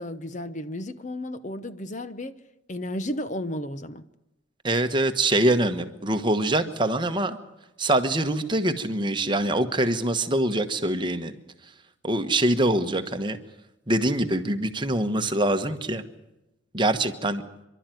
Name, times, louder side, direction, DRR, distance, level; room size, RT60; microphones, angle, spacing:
voice 1, 0.0-2.4 2.7-4.0, left 1 dB, 40° left, 0.9 m, -33 dB
voice 2, 4.6-7.4 7.8-11.3 12.0-13.4 13.9-16.0 16.7-17.4, right 1 dB, 25° right, 1.2 m, -24 dB
28.5 x 12.0 x 9.2 m
head